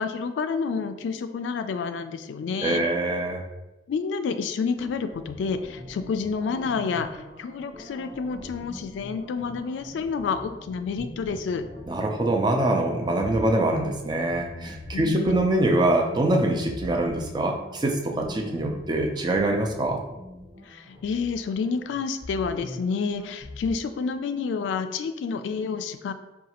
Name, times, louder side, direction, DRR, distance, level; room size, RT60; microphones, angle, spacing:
voice 1, 0.0-2.8 3.9-11.6 14.9-15.4 20.7-26.1, left 5 dB, 80° left, 9 dB, 0.3 m, -29 dB
voice 2, 2.6-3.4 11.9-20.0, right 1 dB, 25° right, 3 dB, 0.4 m, -24 dB
sound 1, 4.7-23.7, left 1 dB, 65° right, 1.0 m, -42 dB
4.8 x 2.3 x 2.9 m, 1.0 s
head